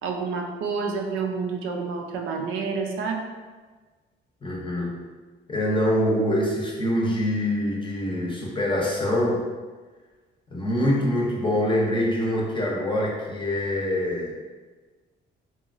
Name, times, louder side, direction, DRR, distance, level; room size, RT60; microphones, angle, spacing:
voice 1, 0.0-3.3, right 5 dB, 85° right, 2 dB, 0.4 m, -29 dB
voice 2, 4.4-5.1 5.5-9.5 10.5-14.3, left 1 dB, 25° left, -2 dB, 0.6 m, -24 dB
2.9 x 2.2 x 2.4 m, 1.3 s
cardioid pair, 90°, 20 cm